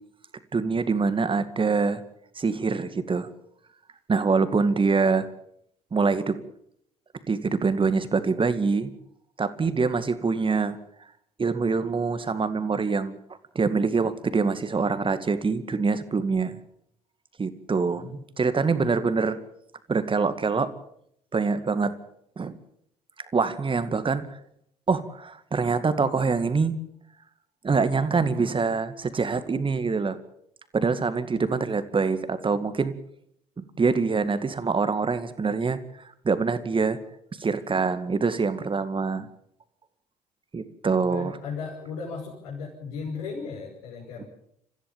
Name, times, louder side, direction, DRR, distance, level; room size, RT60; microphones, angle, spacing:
voice 1, 0.5-2.0 2.4-3.3 4.1-5.3 5.9-6.4 7.3-8.9 9.4-10.8 11.4-13.2 13.6-16.6 17.4-19.4 19.9-20.7 21.3-21.9 22.4-22.6 23.3-24.3 24.9-26.7 27.6-30.2 30.7-32.9 33.6-35.8 36.2-37.0 37.4-39.3 40.5-41.4, right 4 dB, 25° right, 12 dB, 2.1 m, -25 dB
voice 2, 40.9-44.3, left 5 dB, 70° left, -5 dB, 5.9 m, -36 dB
30.0 x 15.0 x 7.2 m, 0.71 s
figure-of-eight pair, 55°, 20 cm